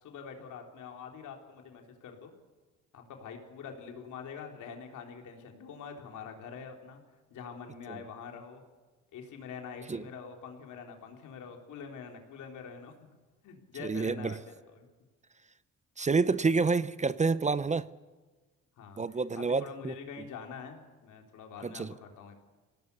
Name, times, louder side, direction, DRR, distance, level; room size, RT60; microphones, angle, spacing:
voice 1, 0.0-2.3 2.9-7.0 7.3-8.6 9.1-13.1 13.4-14.9 18.8-19.0 19.3-22.3, left 6 dB, 80° left, 3.5 m, -45 dB
voice 2, 13.8-14.4 16.0-17.9 19.0-19.9 21.6-21.9, right 4 dB, 25° right, 0.6 m, -28 dB
24.5 x 17.5 x 6.8 m
cardioid pair, 90°, 30 cm